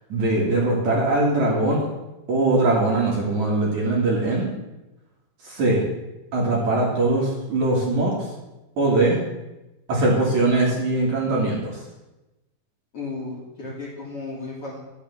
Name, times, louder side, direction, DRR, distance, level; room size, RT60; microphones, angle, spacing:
voice 1, 0.1-1.9 2.3-4.5 5.4-5.8 6.3-8.1 8.8-9.2 9.9-11.8, right 2 dB, 50° right, -3 dB, 2.9 m, -21 dB
voice 2, 12.9-14.8, left 3 dB, 40° left, -5 dB, 2.5 m, -34 dB
12.0 x 6.8 x 7.2 m, 1.0 s
omnidirectional pair, 4.9 m